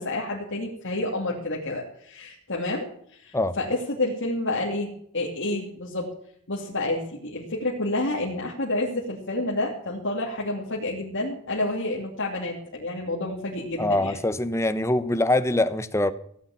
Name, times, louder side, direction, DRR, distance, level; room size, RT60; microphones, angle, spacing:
voice 1, 0.0-6.1 6.5-14.2, left 2 dB, 55° left, -3 dB, 2.7 m, -29 dB
voice 2, 13.8-16.1, left 1 dB, 15° left, 12 dB, 0.9 m, -23 dB
16.0 x 8.7 x 7.3 m, 0.67 s
head